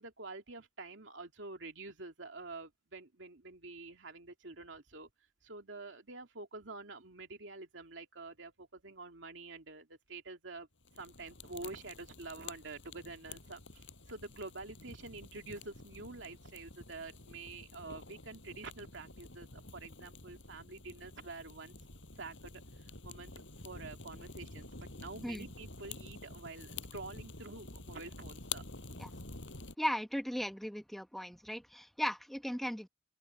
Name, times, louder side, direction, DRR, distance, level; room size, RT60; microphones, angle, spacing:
voice 1, 0.0-5.1 5.4-10.7 10.9-21.7 22.1-23.3 23.6-28.6, right 3 dB, 90° right, 2.6 m, -48 dB
sound 1, 10.8-29.8, left 4 dB, 90° left, 6.0 m, -49 dB
voice 2, 29.8-32.9, equal, ahead, 1.1 m, -37 dB
open air
head